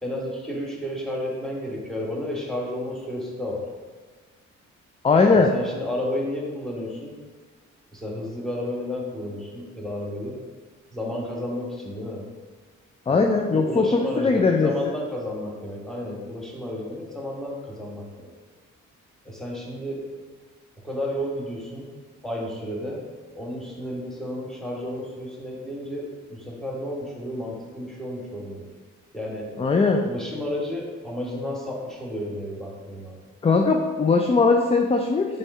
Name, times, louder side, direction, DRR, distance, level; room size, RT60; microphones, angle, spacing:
voice 1, 0.0-3.6 5.3-7.2 7.9-10.4 10.9-12.2 13.1-18.3 19.2-20.0 20.8-21.9 22.2-23.0 23.3-28.7 29.1-29.5 30.0-33.2, left 1 dB, ahead, -3 dB, 1.2 m, -32 dB
voice 2, 5.0-5.5 13.1-14.7 29.6-30.0 33.4-35.4, left 4 dB, 20° left, 2 dB, 0.3 m, -20 dB
4.3 x 3.2 x 3.6 m, 1.4 s
supercardioid pair, 55°, 33 cm